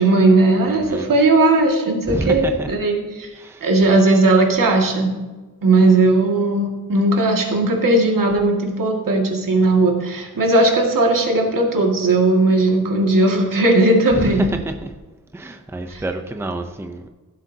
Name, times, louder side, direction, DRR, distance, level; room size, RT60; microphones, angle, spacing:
voice 1, 0.0-3.3 3.6-5.1 5.6-14.4 15.9-16.0, right 2 dB, 75° right, 0 dB, 2.0 m, -17 dB
voice 2, 0.7-1.1 2.1-2.7 3.4-3.7 14.1-14.9 15.3-17.1, right 1 dB, 10° right, 5 dB, 0.6 m, -27 dB
15.5 x 7.8 x 2.8 m, 1.2 s
wide cardioid pair, 160°, 33 cm